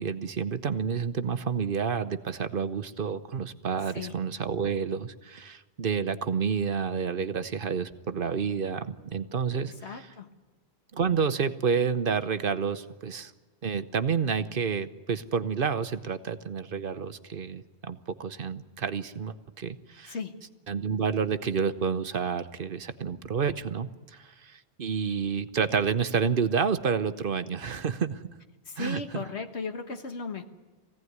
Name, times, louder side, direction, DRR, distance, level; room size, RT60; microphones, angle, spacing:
voice 1, 0.0-10.1 10.9-13.3 13.6-20.1 20.7-28.2 28.8-29.2, right 6 dB, 55° right, 11 dB, 1.0 m, -29 dB
voice 2, 9.7-10.3 20.1-20.5 28.7-30.4, left 4 dB, 75° left, 6 dB, 1.7 m, -36 dB
22.0 x 16.5 x 9.5 m, 1.3 s
omnidirectional pair, 1.1 m